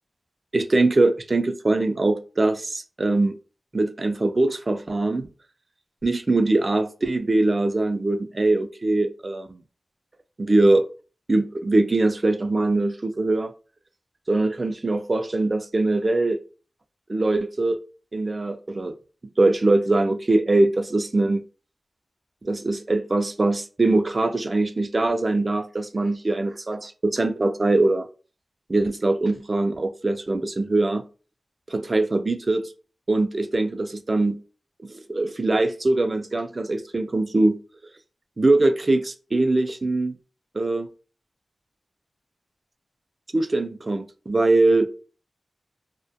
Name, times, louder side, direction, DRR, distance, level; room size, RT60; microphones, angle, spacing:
voice 1, 0.5-3.4 3.7-5.3 6.0-9.6 10.4-10.9 11.3-13.5 14.3-16.4 17.1-17.8 18.1-18.9 19.4-21.4 22.4-28.1 28.7-31.0 31.7-32.7 33.1-34.4 34.8-37.6 38.4-40.2 40.5-40.9 43.3-44.9, right 2 dB, 45° right, 0.3 m, -22 dB
2.1 x 2.1 x 2.7 m
cardioid pair, 45°, 0 cm